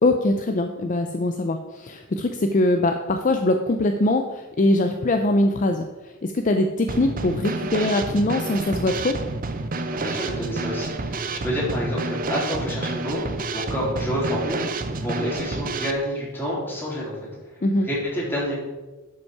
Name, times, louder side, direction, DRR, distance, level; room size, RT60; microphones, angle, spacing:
voice 1, 0.0-9.2 17.6-17.9, left 2 dB, 40° left, 6 dB, 0.5 m, -22 dB
Drum kit / Snare drum, 6.9-15.9, right 3 dB, 40° right, 0.7 m, -29 dB
voice 2, 9.9-13.2 13.5-14.6 15.0-17.2 17.5-18.6, equal, 10° left, -6 dB, 3.3 m, -28 dB
11.5 x 5.3 x 4.7 m, 1.2 s
head